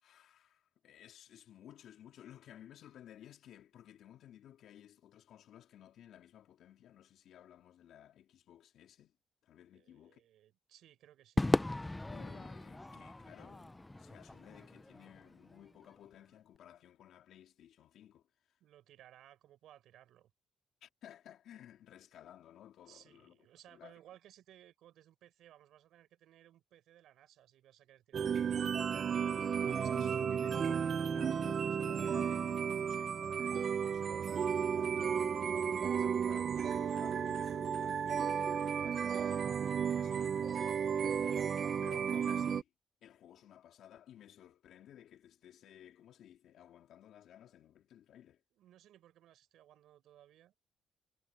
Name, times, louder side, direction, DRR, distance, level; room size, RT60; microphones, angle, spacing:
voice 1, 0.0-9.1 9.4-10.2 12.1-18.6 20.8-23.4 23.7-23.9 29.3-33.2 33.4-35.6 36.0-40.6 40.9-42.7 43.0-48.4, left 11 dB, 75° left, 3.5 m, -57 dB
voice 2, 9.7-11.5 18.6-20.3 22.9-28.8 36.0-36.2 40.1-40.3 48.5-50.5, right 12 dB, 80° right, 4.6 m, -61 dB
Crowd / Fireworks, 11.4-15.9, left 2 dB, 15° left, 0.6 m, -37 dB
sound 1, 28.1-42.6, right 7 dB, 50° right, 0.6 m, -33 dB
Wind instrument woodwind instrument, 29.0-33.6, right 4 dB, 30° right, 7.0 m, -74 dB
cardioid pair, 90°, 0 cm